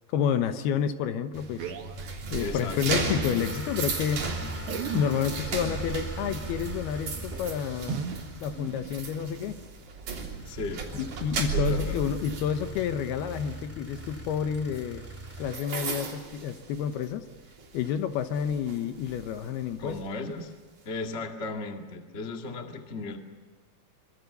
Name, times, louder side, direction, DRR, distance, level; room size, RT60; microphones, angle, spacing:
voice 1, 0.1-1.7 2.3-4.3 4.7-8.0 8.4-9.6 10.9-15.0 15.4-17.3 17.7-20.0, left 8 dB, 75° left, 9 dB, 2.8 m, -29 dB
sound 1, 1.2-3.3 3.6-3.7 3.8-4.0 4.6-9.7 10.1-10.4 10.9-11.2 11.6-11.9 12.4-12.5 13.2-13.3, right 6 dB, 80° right, 4.1 m, -40 dB
sound 2, 1.3-17.3 17.6-17.9 18.3-20.0, right 4 dB, 50° right, 4.5 m, -36 dB
voice 2, 2.4-3.4 10.4-10.8 11.5-12.0 19.8-20.5 20.8-23.2, left 3 dB, 40° left, 3 dB, 0.9 m, -36 dB
sound 3, 3.4-9.2 10.2-15.6, right 2 dB, 5° right, 1.5 m, -42 dB
26.0 x 24.0 x 6.8 m, 1.4 s
omnidirectional pair, 4.9 m